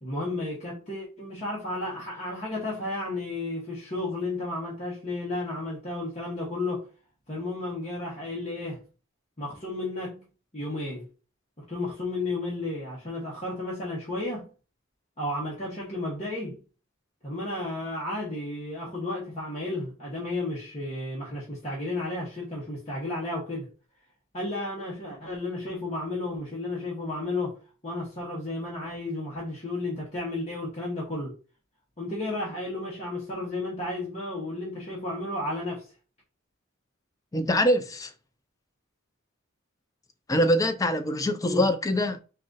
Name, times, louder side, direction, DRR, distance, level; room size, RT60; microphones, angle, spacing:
voice 1, 0.0-6.9 7.3-8.8 9.4-10.2 10.5-11.1 11.7-14.5 15.2-16.6 17.2-23.7 24.3-27.6 27.8-31.4 32.0-35.9 41.4-41.7, left 2 dB, 35° left, 1.2 m, -33 dB
voice 2, 37.3-38.1 40.3-42.2, left 1 dB, 15° left, 0.4 m, -24 dB
4.1 x 2.5 x 3.8 m
head